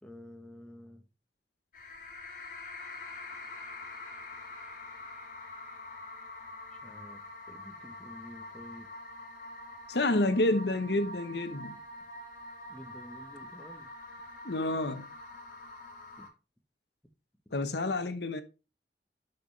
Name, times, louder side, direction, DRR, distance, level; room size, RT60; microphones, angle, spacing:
voice 1, 0.0-1.0 6.8-7.2 7.5-8.9 12.7-13.9 16.2-16.3, equal, 5° left, 1.2 m, -49 dB
sound 1, 1.7-16.3, left 2 dB, 45° left, 2.4 m, -45 dB
voice 2, 9.9-11.8 14.4-15.1 17.5-18.4, left 2 dB, 75° left, 1.0 m, -29 dB
11.5 x 5.6 x 3.3 m
head